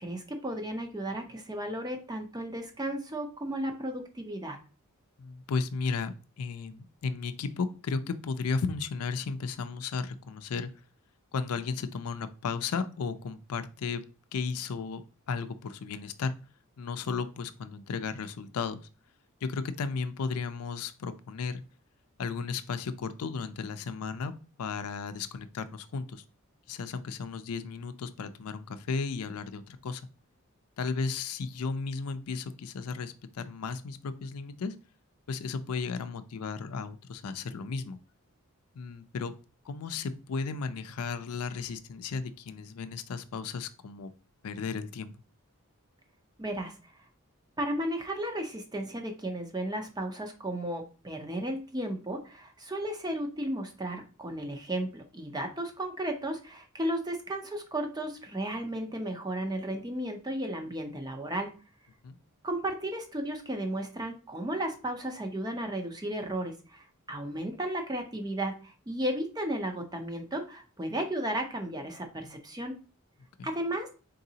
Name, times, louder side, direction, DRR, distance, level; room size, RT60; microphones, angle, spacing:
voice 1, 0.0-4.6 46.4-46.9 47.6-61.5 62.4-72.7 73.4-73.9, right 1 dB, 20° right, 5 dB, 0.6 m, -34 dB
voice 2, 5.2-10.7 11.3-14.0 14.3-16.3 16.8-18.8 19.4-21.6 22.2-24.3 24.6-26.2 26.7-30.0 30.8-34.7 35.3-38.0 38.8-39.3 39.7-44.1 44.4-45.1 62.0-62.2 73.4-73.5, left 5 dB, 80° left, 11 dB, 0.4 m, -34 dB
3.9 x 3.8 x 2.8 m, 0.35 s
head